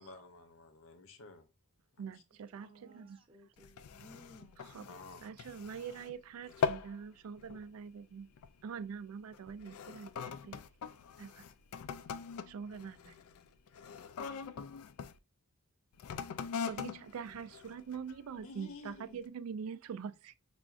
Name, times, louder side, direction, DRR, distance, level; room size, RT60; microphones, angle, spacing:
voice 1, 0.0-1.5 4.8-5.3 18.4-19.2, left 3 dB, 65° left, 0.7 m, -51 dB
voice 2, 2.0-3.2 4.6-4.9 5.2-8.3 8.6-10.6 11.2-11.4 12.5-13.1 16.6-20.4, right 6 dB, 75° right, 0.3 m, -44 dB
voice 3, 2.5-4.9, right 1 dB, 25° right, 0.7 m, -59 dB
sound 1, 3.6-6.2 6.4-7.0 7.4-7.7 8.4-8.6 9.3-15.2 15.9-18.3 18.9-19.0, left 6 dB, 85° left, 0.3 m, -41 dB
5.7 x 2.4 x 2.4 m
head